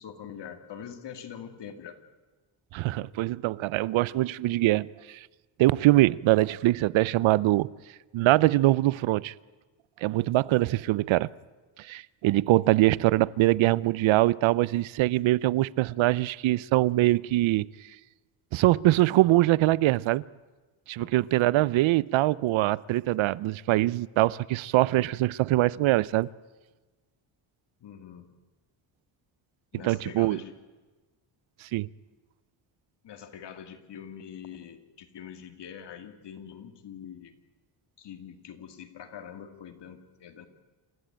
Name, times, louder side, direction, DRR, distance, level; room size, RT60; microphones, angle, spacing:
voice 1, 0.0-2.0 21.0-21.3 27.8-28.3 29.7-30.5 33.0-37.3 38.0-40.5, left 8 dB, 60° left, 2.4 m, -44 dB
voice 2, 2.7-5.3 5.6-7.7 8.1-9.3 10.0-11.3 11.8-17.7 18.5-20.2 20.9-26.3 29.8-30.4 31.6-31.9, right 17 dB, 75° right, 0.6 m, -23 dB
28.0 x 14.0 x 8.9 m
cardioid pair, 110°, 47 cm